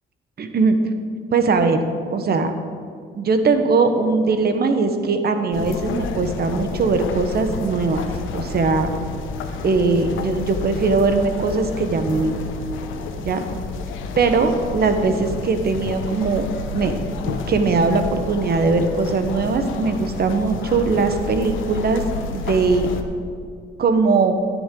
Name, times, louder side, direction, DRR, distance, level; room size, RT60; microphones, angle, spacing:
voice 1, 0.4-0.8 1.3-1.8 2.1-2.5 3.1-8.0 8.3-8.9 9.6-12.4 13.2-13.4 14.2-16.5 16.7-16.9 17.3-22.9 23.8-24.3, right 4 dB, 50° right, 7 dB, 1.1 m, -20 dB
sound 1, 5.5-23.0, left 4 dB, 80° left, 1.0 m, -30 dB
14.0 x 9.5 x 3.8 m, 2.3 s
cardioid pair, 90°, 20 cm